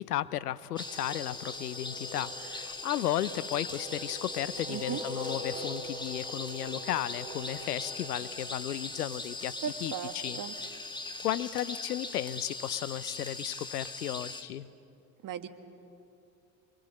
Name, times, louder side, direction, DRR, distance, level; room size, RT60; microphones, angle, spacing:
voice 1, 0.0-9.5 9.8-10.4 11.2-14.7, left 12 dB, 85° left, 17 dB, 0.8 m, -34 dB
sound 1, 0.8-14.4, left 2 dB, 10° left, 2.1 m, -40 dB
sound 2, 0.9-9.5, equal, 20° right, 7.2 m, -45 dB
voice 2, 4.7-5.0 9.6-10.5 15.2-15.5, right 8 dB, 45° right, 8 dB, 1.9 m, -37 dB
26.5 x 23.5 x 7.8 m, 2.7 s
hypercardioid pair, 70°, 45 cm